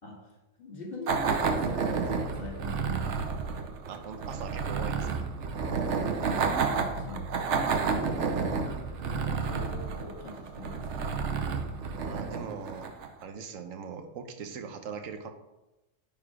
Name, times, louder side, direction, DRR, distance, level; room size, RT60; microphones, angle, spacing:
voice 1, 0.0-3.3 5.9-7.3 7.9-11.1, left 2 dB, 45° left, -2 dB, 2.2 m, -43 dB
sound 1, 1.1-13.2, right 5 dB, 65° right, 1.0 m, -30 dB
voice 2, 3.9-5.3 12.0-12.9 13.2-15.3, right 6 dB, 90° right, 7 dB, 1.1 m, -40 dB
9.4 x 3.8 x 4.9 m, 1.0 s
omnidirectional pair, 1.3 m